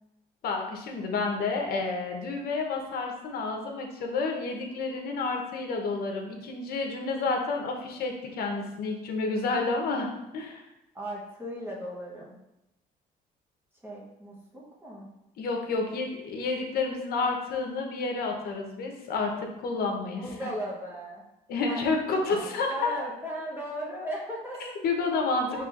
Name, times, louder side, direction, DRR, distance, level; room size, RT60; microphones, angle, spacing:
voice 1, 0.4-10.1 10.3-10.6 15.4-20.5 21.5-22.9 24.8-25.6, left 3 dB, 65° left, 2 dB, 0.8 m, -30 dB
voice 2, 10.9-12.4 13.8-15.1 20.2-21.2 21.7-21.9 22.1-24.7 25.5-25.6, equal, 15° right, -5 dB, 0.8 m, -37 dB
5.5 x 2.9 x 2.4 m, 0.92 s
cardioid pair, 110°, 17 cm